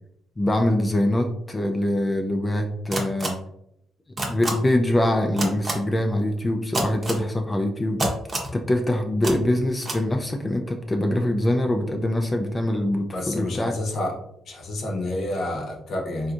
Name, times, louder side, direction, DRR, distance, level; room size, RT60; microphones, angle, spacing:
voice 1, 0.4-3.4 4.2-8.0 8.5-13.8, left 1 dB, 20° left, 4 dB, 0.3 m, -24 dB
sound 1, 2.9-3.3 4.2-4.5 5.4-5.7 6.7-7.2 8.0-8.5 9.2-9.3 9.8-10.0, right 1 dB, 30° right, 0.8 m, -26 dB
voice 2, 13.1-14.1 14.5-16.3, left 1 dB, 60° left, 1 dB, 0.8 m, -29 dB
3.4 x 2.6 x 2.4 m, 0.77 s
cardioid pair, 90°, 0 cm